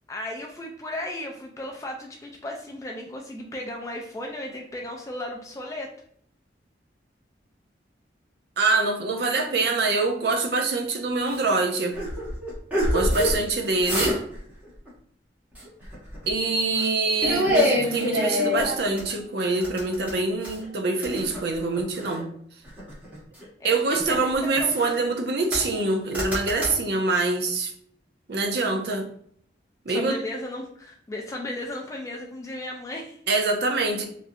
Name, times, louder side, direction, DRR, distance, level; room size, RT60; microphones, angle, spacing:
voice 1, 0.1-5.9 23.6-23.8 24.1-25.0 29.9-33.2, left 1 dB, 15° left, 0 dB, 0.3 m, -35 dB
voice 2, 8.6-12.0 12.9-14.2 16.3-22.3 23.6-27.7 28.3-29.1 29.9-30.2 33.3-34.1, right 3 dB, 60° right, 3 dB, 0.5 m, -25 dB
sound 1, 11.3-11.4 11.9-13.4 13.7-14.4 14.6-14.9 15.6-16.3 16.7-16.9 17.2-19.1 19.6-20.7 21.0-22.2 22.6-23.4 23.9-25.0 25.5-25.9 26.1-26.7, left 1 dB, 10° right, 1.0 m, -26 dB
3.1 x 2.5 x 2.6 m, 0.63 s
head